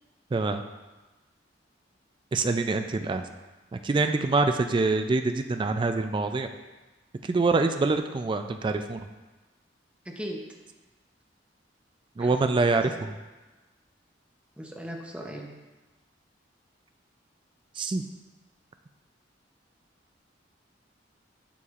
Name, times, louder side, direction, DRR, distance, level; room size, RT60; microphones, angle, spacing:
voice 1, 0.3-0.6 2.3-3.2 3.7-6.5 7.3-9.0 12.2-13.1 17.8-18.0, right 3 dB, 25° right, 7 dB, 0.3 m, -25 dB
voice 2, 10.1-10.4 12.2-12.3 12.8-13.0 14.6-15.5, equal, 5° right, 0 dB, 0.7 m, -38 dB
6.9 x 6.5 x 2.4 m, 1.2 s
head